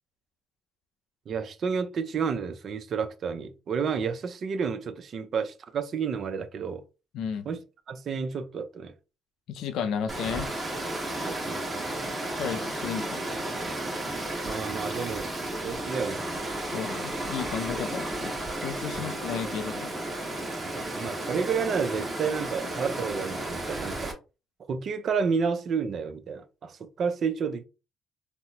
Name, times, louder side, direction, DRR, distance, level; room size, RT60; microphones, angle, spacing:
voice 1, 1.3-6.8 7.5-7.6 7.9-8.9 11.2-11.9 14.4-15.3 15.6-16.2 19.0-19.1 19.3-19.4 20.8-24.1 24.7-27.6, right 6 dB, 50° right, 0.5 m, -30 dB
voice 2, 7.1-7.5 9.5-10.5 12.4-13.4 16.7-19.9, left 7 dB, 75° left, 0.5 m, -33 dB
Water, 10.1-24.1, right 1 dB, 25° right, 1.2 m, -33 dB
4.1 x 2.0 x 2.8 m
cardioid pair, 95°, 0 cm